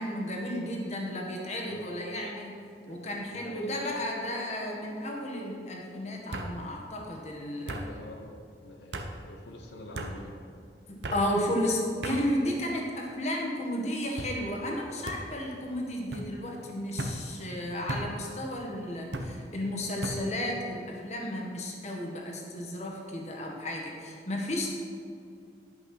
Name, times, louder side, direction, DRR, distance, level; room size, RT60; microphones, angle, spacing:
voice 1, 0.0-2.5 2.9-7.9 10.9-24.7, left 1 dB, 40° left, 0 dB, 1.6 m, -33 dB
voice 2, 1.7-2.0 3.3-3.7 7.5-8.3 8.6-10.4, left 1 dB, 85° left, 2 dB, 1.0 m, -47 dB
sound 1, 2.9-3.3 3.6-4.2 5.3-5.4 6.3-6.5 7.7-7.9 8.9-9.1 9.9-10.1 11.0-11.3 12.0-12.2 13.0-13.4 14.2-14.4 15.1-15.2 16.1-16.3 17.0-17.2 17.9-18.1 19.1-19.3 20.0-20.2, right 1 dB, 80° right, 0.9 m, -36 dB
11.5 x 5.8 x 6.0 m, 2.3 s
head